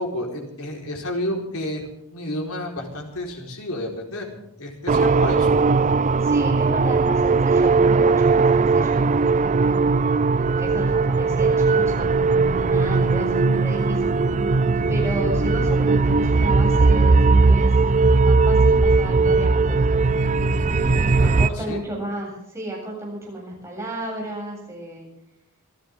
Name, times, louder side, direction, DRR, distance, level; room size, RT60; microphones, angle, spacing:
voice 1, 0.0-1.9 2.1-4.3 4.6-5.6 21.6-21.8, left 1 dB, 80° left, 1 dB, 4.4 m, -30 dB
sound 1, 4.9-21.5, right 4 dB, 35° right, 0.5 m, -19 dB
voice 2, 6.2-9.8 10.3-12.2 12.6-14.3 14.9-17.7 18.1-20.3 21.2-25.1, right 2 dB, 10° right, -3 dB, 8.0 m, -33 dB
sound 2, 11.5-21.1, equal, 65° right, 5.5 m, -30 dB
26.5 x 13.0 x 3.7 m, 0.84 s
head